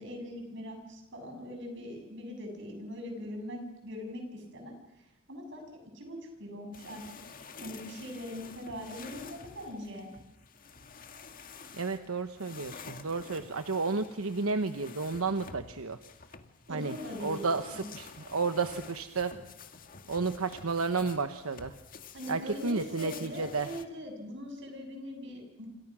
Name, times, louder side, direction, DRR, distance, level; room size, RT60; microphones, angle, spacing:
voice 1, 0.0-10.1 16.7-17.9 22.1-25.7, equal, 60° right, 4 dB, 7.7 m, -42 dB
sound 1, 6.7-23.9, left 5 dB, 40° left, 1.8 m, -49 dB
voice 2, 11.8-16.0 16.7-19.3 20.1-21.7 22.3-23.7, right 4 dB, 85° right, 8 dB, 1.1 m, -32 dB
27.5 x 27.5 x 6.3 m, 0.92 s
head